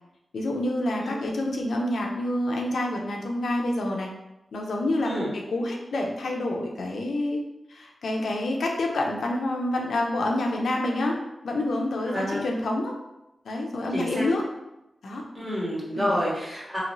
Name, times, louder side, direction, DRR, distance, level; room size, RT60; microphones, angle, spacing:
voice 1, 0.3-4.1 4.5-7.4 7.7-11.2 11.4-12.9 13.4-14.4 15.0-15.3 15.9-16.2, left 1 dB, 85° left, 1 dB, 0.5 m, -27 dB
voice 2, 12.1-12.4 13.9-14.2 15.3-16.8, equal, 20° right, -7 dB, 1.3 m, -28 dB
3.0 x 2.7 x 2.6 m, 0.93 s
wide cardioid pair, 85°, 0 cm